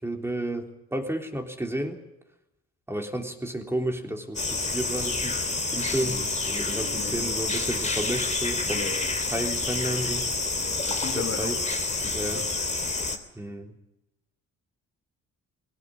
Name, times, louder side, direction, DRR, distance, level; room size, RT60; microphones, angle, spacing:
voice 1, 0.0-2.0 2.9-5.4 5.7-8.9 9.3-10.3 11.1-11.6 12.1-12.5 13.4-13.8, right 1 dB, 10° right, 3.5 m, -32 dB
sound 1, 4.3-13.2, left 3 dB, 25° left, 3.0 m, -28 dB
voice 2, 6.7-7.4 8.7-9.3 10.6-11.7 12.0-12.5, left 7 dB, 45° left, 1.9 m, -37 dB
21.5 x 18.0 x 9.8 m
cardioid pair, 90°, 30 cm